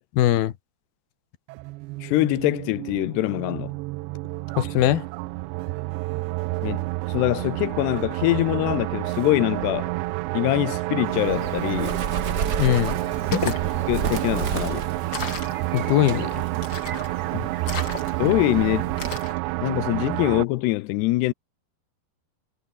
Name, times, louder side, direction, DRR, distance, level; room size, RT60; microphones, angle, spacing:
voice 1, 0.2-0.5 4.6-5.0 12.6-13.0 15.7-16.4 17.3-17.5, left 13 dB, 70° left, 3.1 m, -21 dB
sound 1, 1.5-20.4, right 21 dB, 85° right, 2.9 m, -29 dB
voice 2, 2.0-3.7 6.6-9.9 10.3-12.0 13.4-13.6 13.9-14.9 18.2-18.9 19.6-21.3, left 19 dB, 90° left, 2.8 m, -24 dB
Bird, 11.0-19.3, right 6 dB, 55° right, 1.1 m, -32 dB
sound 2, 13.3-13.7 15.1-15.6 16.6-17.1 17.6-18.3 19.0-19.4, left 4 dB, 30° left, 3.5 m, -31 dB
omnidirectional pair, 4.9 m